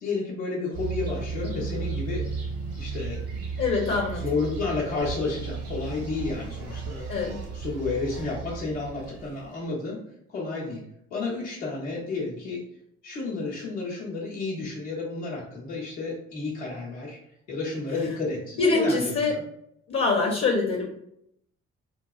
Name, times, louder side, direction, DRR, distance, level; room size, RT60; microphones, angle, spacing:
voice 1, 0.0-2.2 2.8-3.2 3.5-3.6 4.2-7.0 7.5-10.0 10.3-10.8 11.1-12.6 13.0-17.2 17.5-19.4, left 3 dB, 80° left, -5 dB, 1.0 m, -31 dB
sound 1, 0.7-9.5, right 5 dB, 65° right, 0.9 m, -34 dB
voice 2, 3.6-4.2 7.1-7.3 18.6-19.3 19.9-20.9, left 3 dB, 40° left, 0 dB, 0.7 m, -24 dB
4.4 x 2.3 x 2.3 m, 0.76 s
figure-of-eight pair, 40°, 35 cm